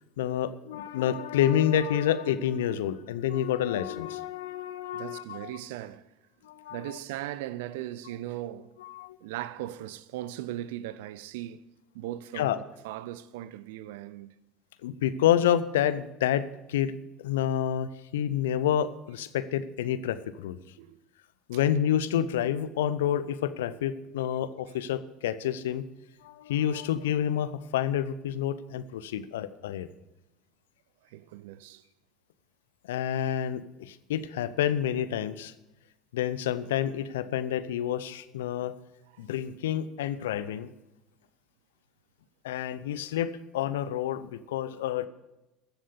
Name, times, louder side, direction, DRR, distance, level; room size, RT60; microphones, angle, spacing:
voice 1, 0.2-5.5 6.4-6.9 8.8-9.2 12.3-12.6 14.8-16.9 17.2-20.6 21.5-25.8 26.2-29.9 32.9-35.5 36.1-38.7 39.2-40.7 42.4-45.1, left 10 dB, 75° left, 0.6 m, -28 dB
voice 2, 4.9-6.1 6.7-8.7 9.2-11.6 11.9-14.3 20.8-21.0 31.1-31.8 39.1-39.2, right 13 dB, 70° right, 0.5 m, -38 dB
14.0 x 7.4 x 6.9 m
hypercardioid pair, 70°, 0 cm